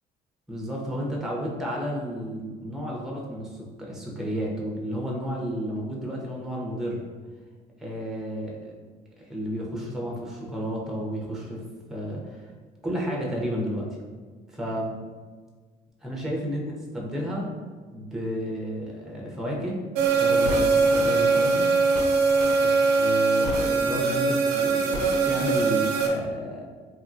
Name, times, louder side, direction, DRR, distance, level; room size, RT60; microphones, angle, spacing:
voice 1, 0.5-7.0 7.8-8.7 9.2-12.5 12.8-14.0 14.5-15.0 16.0-17.5 17.9-19.8 20.1-21.7 22.6-26.6, equal, 5° right, -2 dB, 0.5 m, -32 dB
sound 1, 19.9-26.1, right 3 dB, 85° right, 0.4 m, -22 dB
2.9 x 2.1 x 2.5 m, 1.5 s
cardioid pair, 110°, 17 cm